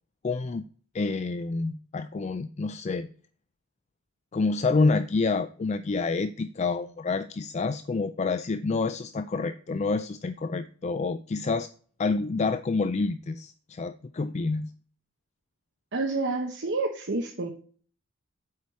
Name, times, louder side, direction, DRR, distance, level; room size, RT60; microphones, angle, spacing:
voice 1, 0.2-0.7 0.9-3.1 4.3-11.7 12.0-14.7, left 3 dB, 35° left, 11 dB, 0.4 m, -28 dB
voice 2, 15.9-17.5, right 3 dB, 60° right, 3 dB, 1.0 m, -29 dB
8.4 x 4.7 x 6.9 m, 0.43 s
head